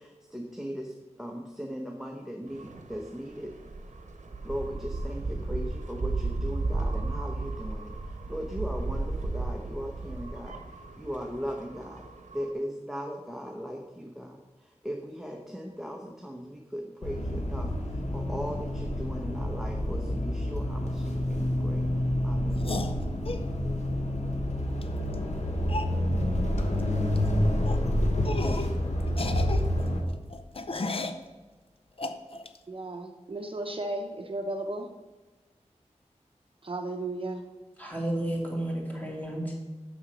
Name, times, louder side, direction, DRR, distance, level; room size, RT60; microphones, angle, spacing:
voice 1, 0.0-3.6 4.4-12.0 12.3-22.7, equal, 5° right, 0 dB, 0.9 m, -38 dB
sound 1, 2.5-12.5, right 2 dB, 80° right, 0.9 m, -34 dB
sound 2, 17.0-30.0, left 1 dB, 70° left, 1.4 m, -28 dB
sound 3, 22.6-23.4 24.8-24.9 25.1-25.2 25.7-25.9 26.6-26.8 27.1-27.3 27.7-27.8 28.2-28.8 29.1-31.2 32.0-32.6, left 3 dB, 50° left, 0.6 m, -34 dB
voice 2, 32.7-34.9 36.6-37.5, right 2 dB, 45° right, 4 dB, 0.8 m, -34 dB
voice 3, 37.8-39.5, right 1 dB, 15° left, -2 dB, 2.6 m, -32 dB
7.1 x 6.2 x 6.1 m, 1.2 s
wide cardioid pair, 85°, 12 cm